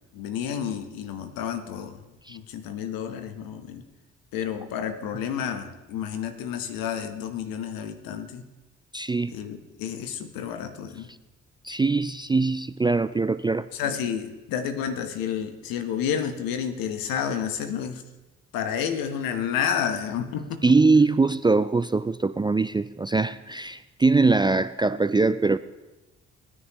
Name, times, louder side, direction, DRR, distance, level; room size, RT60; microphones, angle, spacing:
voice 1, 0.0-2.0 2.3-3.8 4.3-8.4 9.3-11.1 13.7-18.0 18.5-20.7, left 8 dB, 75° left, 1.1 m, -30 dB
voice 2, 8.9-9.3 11.6-13.7 20.6-25.6, right 3 dB, 15° right, 0.3 m, -22 dB
18.5 x 9.8 x 3.1 m
hypercardioid pair, 45°, 35 cm